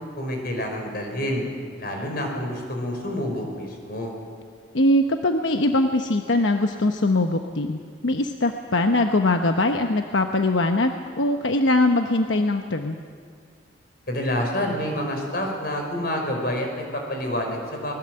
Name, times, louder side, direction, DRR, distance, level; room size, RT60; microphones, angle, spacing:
voice 1, 0.2-1.4 1.8-4.1 14.1-17.9, left 1 dB, 55° left, 2 dB, 5.2 m, -28 dB
voice 2, 4.7-13.0, left 2 dB, 90° left, 5 dB, 1.0 m, -22 dB
23.5 x 20.5 x 7.8 m, 2.2 s
head